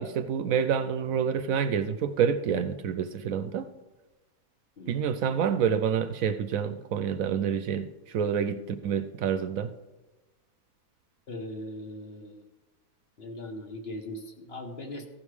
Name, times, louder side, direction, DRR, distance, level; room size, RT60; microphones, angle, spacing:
voice 1, 0.0-3.7 4.9-7.9 8.1-9.7, right 7 dB, 70° right, 0.9 m, -28 dB
voice 2, 4.8-5.1 11.3-12.4 13.2-15.1, left 1 dB, 45° left, 1.2 m, -39 dB
15.0 x 5.3 x 4.8 m
omnidirectional pair, 1.6 m